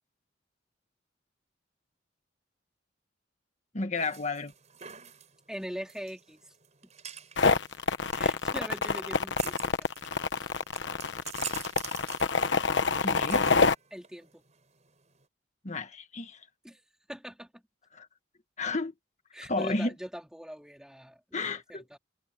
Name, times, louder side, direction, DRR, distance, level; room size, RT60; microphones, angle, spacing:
voice 1, 3.7-4.5 13.0-13.5 15.6-16.4 17.9-18.1 18.6-18.9 19.5-19.9 21.3-21.8, left 3 dB, 35° left, 1.6 m, -32 dB
sound 1, 3.9-15.2, right 9 dB, 35° right, 5.8 m, -46 dB
voice 2, 5.5-6.5 8.1-9.7 10.4-10.5 13.9-14.4 16.6-16.8 17.1-17.6 19.3-22.0, equal, 5° right, 3.9 m, -42 dB
sound 2, 7.4-13.7, left 4 dB, 65° left, 1.0 m, -26 dB
head